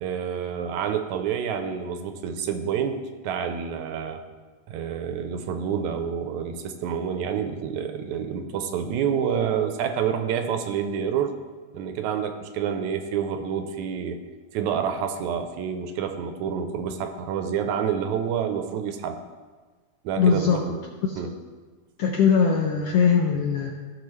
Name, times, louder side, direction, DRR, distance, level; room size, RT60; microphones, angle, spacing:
voice 1, 0.0-4.2 4.7-11.3 11.7-14.2 14.5-19.2 20.0-20.8 21.2-21.4, right 7 dB, 85° right, 7 dB, 2.0 m, -28 dB
voice 2, 20.2-20.6 21.0-21.3 22.0-23.7, left 6 dB, 75° left, 1 dB, 1.4 m, -21 dB
15.0 x 6.0 x 3.2 m, 1.4 s
omnidirectional pair, 3.4 m